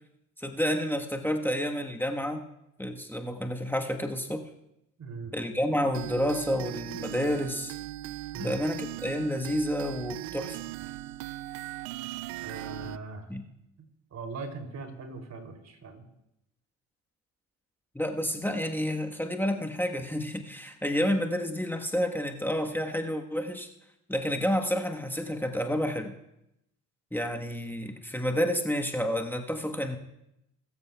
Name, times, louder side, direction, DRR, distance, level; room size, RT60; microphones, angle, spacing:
voice 1, 0.4-2.5 2.8-4.5 5.3-7.7 8.4-10.7 13.3-13.4 17.9-23.7 24.1-26.1 27.1-30.0, equal, 5° left, 4 dB, 1.3 m, -30 dB
voice 2, 5.0-5.3 8.3-8.6 12.4-13.3 13.8-16.1, right 4 dB, 40° right, 4 dB, 3.0 m, -40 dB
sound 1, 5.9-13.0, right 16 dB, 70° right, 0.6 m, -39 dB
21.0 x 13.5 x 2.3 m, 0.84 s
hypercardioid pair, 55°, 41 cm